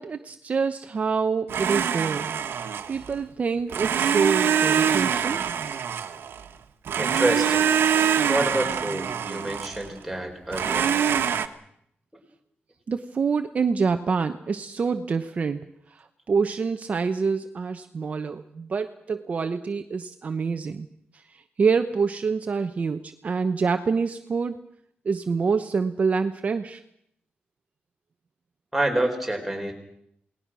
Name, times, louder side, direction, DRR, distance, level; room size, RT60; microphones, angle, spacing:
voice 1, 0.0-2.3 2.9-5.4 12.9-15.6 15.9-20.9 21.6-24.6 25.0-26.8, right 5 dB, 40° right, 7 dB, 0.9 m, -26 dB
Domestic sounds home sounds, 1.5-3.1 3.7-6.5 6.9-9.9 10.5-11.5, right 8 dB, 80° right, 1.4 m, -24 dB
voice 2, 7.0-7.7 8.3-10.9 28.7-29.7, right 1 dB, ahead, 1 dB, 4.7 m, -27 dB
28.5 x 19.5 x 6.2 m, 0.72 s
wide cardioid pair, 165°, 4 cm